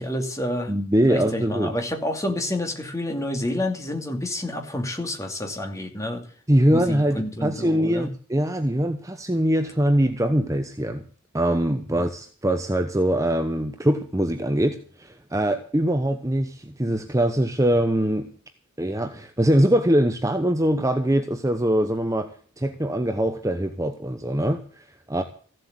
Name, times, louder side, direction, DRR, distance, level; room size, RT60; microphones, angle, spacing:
voice 1, 0.0-0.7 1.1-6.2 6.7-8.1, left 1 dB, 15° left, 2.5 m, -29 dB
voice 2, 0.7-1.8 6.5-11.0 11.3-18.3 18.8-25.2, right 1 dB, 15° right, 0.9 m, -23 dB
15.5 x 7.8 x 9.4 m
head